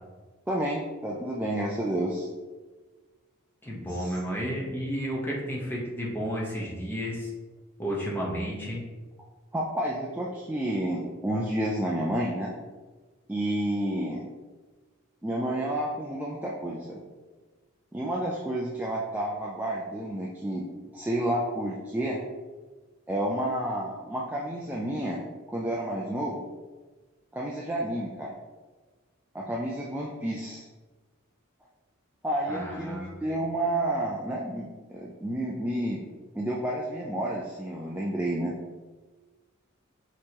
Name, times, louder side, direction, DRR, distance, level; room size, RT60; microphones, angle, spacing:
voice 1, 0.5-2.3 3.9-4.1 9.5-12.5 13.3-14.3 15.2-17.0 17.9-20.6 20.9-22.2 23.1-25.2 25.5-26.4 27.3-28.3 29.3-30.6 32.2-36.0 36.4-38.5, right 1 dB, 10° right, -4 dB, 0.3 m, -30 dB
voice 2, 3.6-7.3 7.8-8.8 32.5-33.2, equal, 10° left, -4 dB, 0.8 m, -32 dB
5.4 x 3.0 x 2.8 m, 1.3 s
head